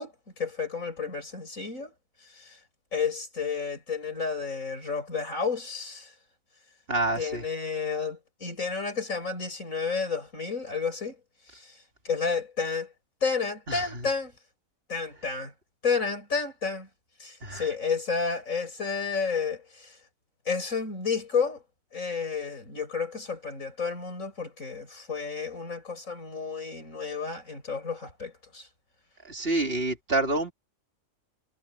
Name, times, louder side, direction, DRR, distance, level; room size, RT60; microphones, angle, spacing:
voice 1, 0.0-1.9 2.3-2.6 2.9-6.1 7.2-11.2 11.6-11.7 12.0-12.9 13.2-14.3 14.9-15.5 15.8-16.9 17.2-20.0 20.5-21.6 21.9-28.7, left 5 dB, 65° left, 5.9 m, -31 dB
voice 2, 6.9-7.4 13.7-14.1 17.4-17.7 29.3-30.5, right 2 dB, 45° right, 3.5 m, -28 dB
omnidirectional pair, 1.5 m